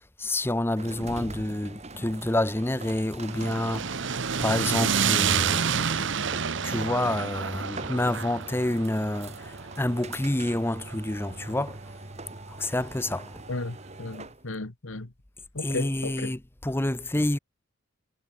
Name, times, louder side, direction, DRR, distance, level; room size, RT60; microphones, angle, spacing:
voice 1, 0.0-5.9 6.6-11.8 12.5-13.3 15.6-17.4, left 1 dB, 10° left, 0.7 m, -28 dB
sound 1, 0.7-14.4, right 2 dB, 35° right, 2.7 m, -43 dB
sound 2, 3.2-11.4, right 6 dB, 60° right, 1.0 m, -29 dB
voice 2, 13.5-15.1 15.5-16.4, left 2 dB, 80° left, 1.6 m, -34 dB
head